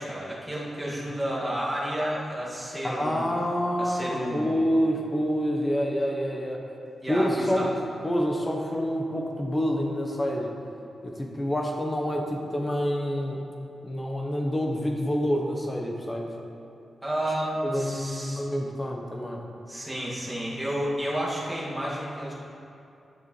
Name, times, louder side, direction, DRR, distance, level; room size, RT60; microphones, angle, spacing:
voice 1, 0.0-3.3 3.8-4.6 7.0-7.6 17.0-18.4 19.7-22.3, equal, 5° right, -8 dB, 2.3 m, -31 dB
voice 2, 2.8-6.6 7.1-7.7 8.0-10.5 11.0-13.4 13.8-16.3 17.6-19.4, equal, 20° left, 0 dB, 1.1 m, -27 dB
12.0 x 6.7 x 3.3 m, 2.7 s
wide cardioid pair, 120°, 0 cm